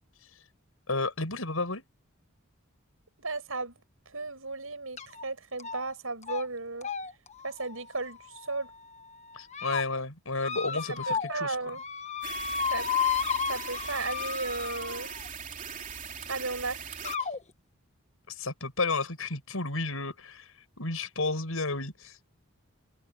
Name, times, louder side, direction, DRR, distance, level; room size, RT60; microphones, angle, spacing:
voice 1, 0.9-1.8 9.3-11.6 18.3-20.5 20.8-22.3, left 3 dB, 80° left, 5.9 m, -32 dB
voice 2, 3.2-6.9 7.4-8.7 10.7-11.8 12.7-12.9 13.5-15.1 16.3-17.3, right 3 dB, 75° right, 7.4 m, -35 dB
sound 1, 5.0-5.2 5.6-6.0 6.2-6.4 6.8-8.7 9.3-9.8 10.4-11.4 11.7-15.3 16.2-16.3 17.0-17.4, left 6 dB, 35° left, 1.2 m, -33 dB
sound 2, 12.2-17.2, right 7 dB, 40° right, 3.2 m, -40 dB
head